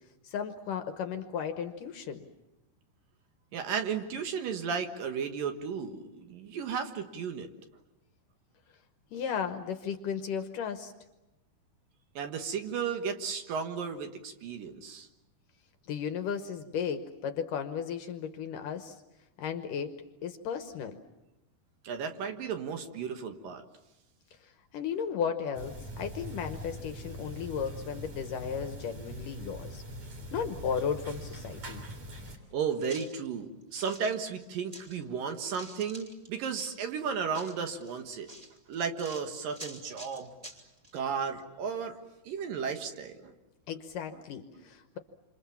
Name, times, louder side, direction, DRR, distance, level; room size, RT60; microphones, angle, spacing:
voice 1, 0.2-2.2 9.1-10.9 15.9-19.0 19.4-20.0 20.2-21.0 24.4-29.8 30.3-31.8 43.7-45.0, left 7 dB, 70° left, 8 dB, 2.4 m, -35 dB
voice 2, 3.5-7.5 12.2-15.1 21.8-23.6 32.5-38.3 38.7-40.3 40.9-42.0 42.2-43.3, right 6 dB, 65° right, 6 dB, 3.0 m, -34 dB
sound 1, 25.5-32.4, right 1 dB, 45° right, 4.5 m, -42 dB
sound 2, 32.2-32.3 32.8-35.0 35.3-36.8 37.3-41.0 41.4-41.5, equal, 10° right, 1.9 m, -49 dB
28.0 x 27.0 x 7.2 m, 0.95 s
omnidirectional pair, 4.6 m